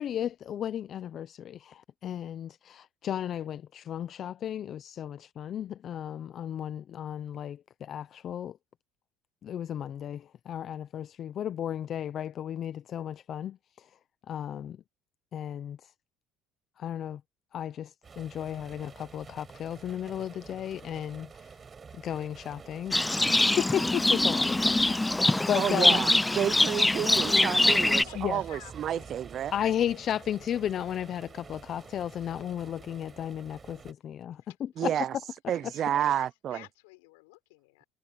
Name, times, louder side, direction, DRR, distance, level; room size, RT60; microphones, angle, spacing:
voice 1, 0.0-8.6 9.4-13.9 14.3-14.8 15.3-15.8 16.8-17.2 17.5-21.5 21.9-23.0 23.2-25.0 25.5-26.0 28.1-28.4 29.5-35.0, left 10 dB, 50° left, 0.8 m, -34 dB
sound 1, 18.0-33.9, right 5 dB, 30° right, 6.8 m, -49 dB
Livestock farm animals working animals, 22.9-28.0, left 2 dB, 10° left, 0.5 m, -24 dB
voice 2, 25.5-26.1 26.3-29.5 34.8-35.1 35.5-36.6, right 10 dB, 50° right, 0.6 m, -30 dB
voice 3, 27.8-29.2 34.4-37.9, left 25 dB, 90° left, 5.2 m, -51 dB
supercardioid pair, 85°, 0 cm